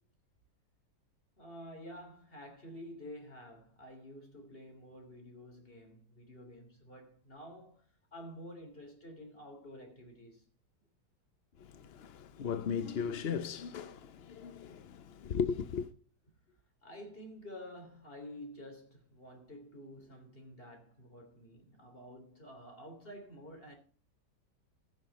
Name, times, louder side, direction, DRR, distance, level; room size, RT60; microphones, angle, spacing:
voice 1, 1.4-10.4 16.5-16.6 16.8-23.8, equal, 30° left, 3.5 m, -50 dB
voice 2, 11.6-15.9, left 7 dB, 55° left, 0.7 m, -37 dB
16.0 x 6.5 x 4.1 m
omnidirectional pair, 1.9 m